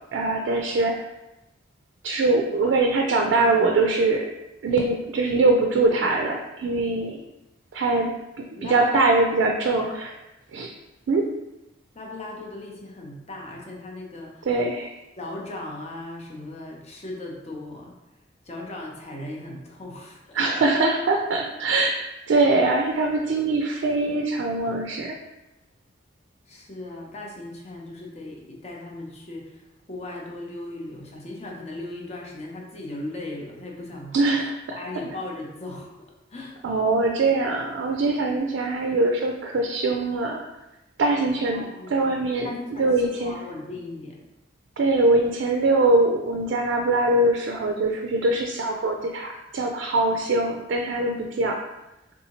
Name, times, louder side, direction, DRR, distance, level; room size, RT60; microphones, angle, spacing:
voice 1, 0.1-0.9 2.0-4.3 4.6-7.2 7.7-8.1 8.4-10.1 10.5-10.7 11.1-11.3 14.5-14.9 20.4-21.9 22.3-25.2 34.1-34.8 36.6-40.4 41.0-41.6 41.9-42.5 42.8-43.4 44.8-51.6, right 2 dB, 70° right, 2 dB, 0.3 m, -22 dB
voice 2, 8.5-9.1 9.8-10.0 11.9-14.5 15.2-17.9 18.4-20.7 26.5-34.5 34.8-36.6 41.5-42.1 42.4-44.2, left 2 dB, 35° left, -1 dB, 0.6 m, -37 dB
3.5 x 2.7 x 2.9 m, 0.96 s
head